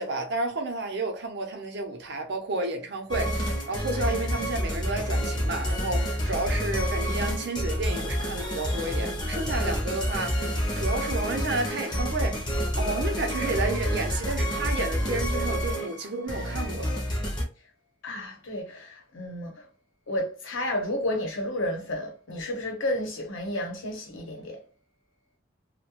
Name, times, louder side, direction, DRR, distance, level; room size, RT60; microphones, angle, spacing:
voice 1, 0.0-12.4 12.8-16.9, right 2 dB, 55° right, 0.6 m, -31 dB
sound 1, 3.1-17.4, equal, 20° left, 0.6 m, -28 dB
voice 2, 18.0-19.7 20.1-24.6, left 1 dB, 80° left, 0.8 m, -31 dB
2.3 x 2.1 x 2.9 m
head